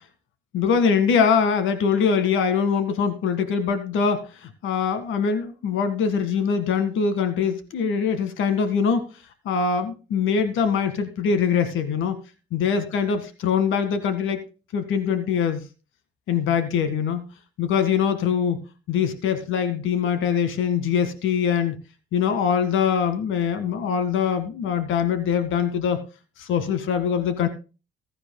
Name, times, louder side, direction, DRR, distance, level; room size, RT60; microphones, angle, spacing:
voice 1, 0.5-9.1 9.5-12.2 12.5-14.4 14.7-15.6 16.3-17.2 17.6-21.8 22.1-26.0 26.4-27.5, left 6 dB, 80° left, 10 dB, 1.9 m, -23 dB
15.5 x 13.5 x 2.2 m, 0.32 s
cardioid pair, 90°, 20 cm